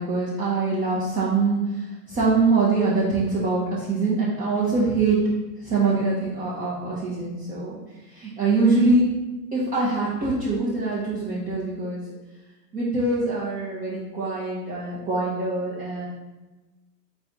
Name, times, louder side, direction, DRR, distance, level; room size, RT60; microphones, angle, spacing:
voice 1, 0.0-1.6 2.1-5.2 5.6-7.7 8.1-9.1 9.5-12.0 12.7-16.1, right 3 dB, 15° right, -8 dB, 0.8 m, -23 dB
4.0 x 3.5 x 3.5 m, 1.1 s
hypercardioid pair, 115°, 49 cm